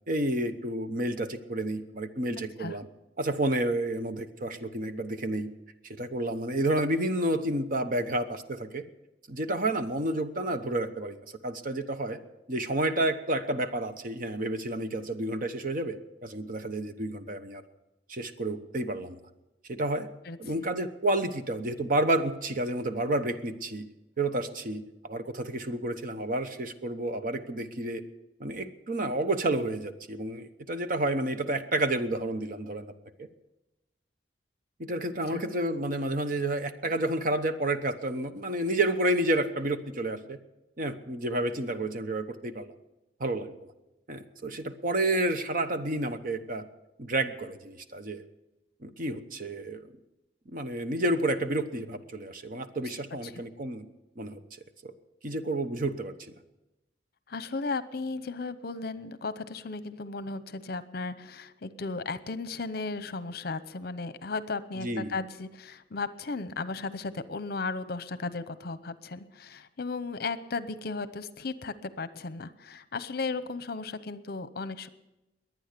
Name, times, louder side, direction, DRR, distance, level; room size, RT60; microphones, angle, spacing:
voice 1, 0.1-2.9 3.2-5.5 5.9-8.8 9.3-12.2 12.5-17.6 18.1-19.2 19.7-20.1 20.4-23.9 24.2-28.0 28.4-32.9 33.2-33.3 34.8-40.4 40.8-42.7 43.2-43.5 44.1-46.6 47.0-48.2 48.8-49.9 50.5-53.9 54.2-54.4 54.8-54.9 55.2-56.3 64.8-65.1, right 1 dB, 50° right, 9 dB, 1.0 m, -30 dB
voice 2, 57.3-74.9, left 3 dB, 55° left, 14 dB, 0.8 m, -35 dB
22.0 x 9.3 x 6.8 m, 0.97 s
head